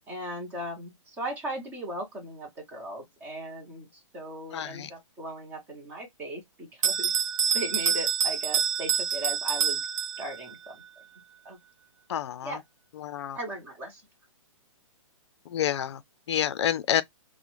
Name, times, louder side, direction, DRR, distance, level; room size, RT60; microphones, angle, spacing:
voice 1, 0.1-7.1 7.5-9.8 10.2-10.8 11.4-11.6 12.4-12.6 13.3-14.0, right 1 dB, 10° right, 0.6 m, -37 dB
voice 2, 4.5-4.9 12.1-12.6 13.0-13.4 15.5-16.0 16.3-17.0, left 10 dB, 55° left, 0.4 m, -28 dB
Bell, 6.8-10.6, right 8 dB, 70° right, 0.4 m, -27 dB
2.4 x 2.0 x 2.9 m
hypercardioid pair, 165°, 17 cm